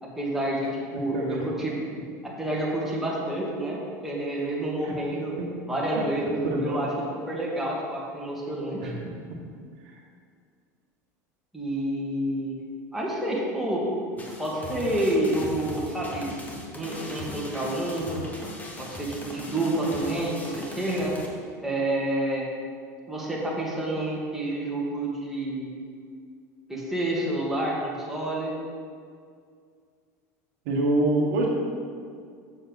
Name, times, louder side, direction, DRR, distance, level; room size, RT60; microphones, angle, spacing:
voice 1, 0.0-1.8 2.2-5.4 5.7-6.9 7.3-8.9 11.5-12.6 12.9-13.8 14.4-16.4 16.7-18.2 18.8-21.1 21.6-22.5 23.1-25.7 26.7-28.5, right 1 dB, 5° right, -5 dB, 2.1 m, -29 dB
voice 2, 6.5-6.8 8.8-8.9 30.6-31.5, right 2 dB, 70° right, -1 dB, 1.4 m, -25 dB
sound 1, 14.2-21.3, left 1 dB, 15° left, 1.5 m, -39 dB
7.0 x 7.0 x 4.1 m, 2.1 s
hypercardioid pair, 95°, 9 cm